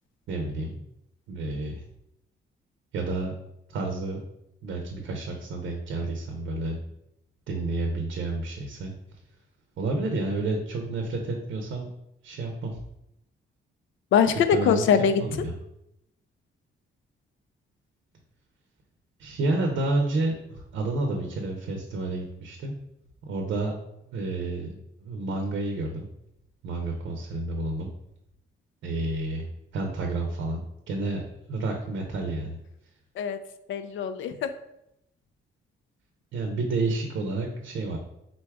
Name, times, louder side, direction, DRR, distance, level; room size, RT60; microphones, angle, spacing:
voice 1, 0.3-0.8 1.3-1.8 2.9-3.3 3.7-4.2 4.6-6.8 7.5-8.9 9.8-11.9 12.2-12.8 14.5-15.6 19.2-22.7 23.3-23.7 24.1-26.1 26.6-27.9 28.8-32.6 36.3-38.0, right 2 dB, 85° right, 2 dB, 0.6 m, -30 dB
voice 2, 14.1-15.2 33.2-33.4 33.7-34.5, left 7 dB, 80° left, 10 dB, 0.4 m, -22 dB
4.0 x 2.3 x 4.6 m, 0.82 s
cardioid pair, 110°, 20 cm